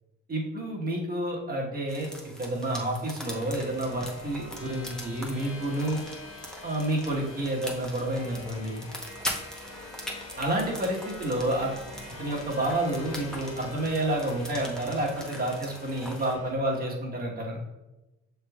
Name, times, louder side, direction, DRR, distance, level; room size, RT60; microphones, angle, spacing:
voice 1, 0.3-2.1 2.4-6.0 6.6-8.8 10.4-11.7 12.2-17.6, right 1 dB, 30° right, -1 dB, 1.1 m, -29 dB
sound 1, 1.9-16.3, equal, ahead, 0.8 m, -42 dB
sound 2, 3.3-16.5, left 2 dB, 55° left, 1.2 m, -45 dB
6.4 x 3.4 x 2.3 m, 1.0 s
cardioid pair, 90°, 30 cm